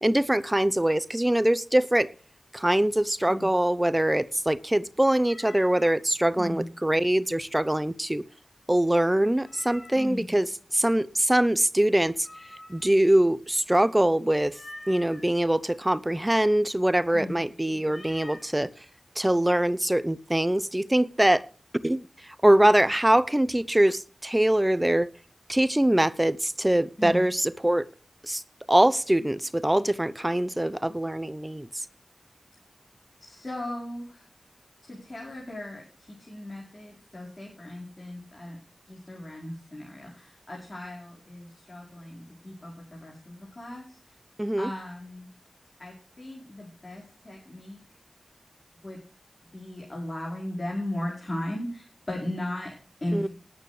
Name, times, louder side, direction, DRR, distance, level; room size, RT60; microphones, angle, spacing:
voice 1, 0.0-2.1 2.5-8.2 8.7-10.5 10.7-12.3 12.7-14.5 14.9-18.7 19.2-21.4 21.8-22.0 22.4-25.1 25.5-27.9 28.2-28.4 28.7-31.7 44.4-44.7 53.1-53.3, right 1 dB, 15° right, 0.8 m, -23 dB
Meow, 5.2-6.0 9.4-10.2 12.2-13.0 14.5-15.2 17.9-18.5, left 1 dB, 55° left, 5.0 m, -46 dB
voice 2, 6.3-6.7 9.9-10.3 17.1-17.4 27.0-27.2 33.2-34.3 34.8-38.6 38.9-44.2 44.6-45.3 45.8-47.8 48.8-49.0 49.5-53.3, left 1 dB, 40° left, 4.8 m, -37 dB
19.5 x 9.4 x 3.3 m
wide cardioid pair, 80°, 0 cm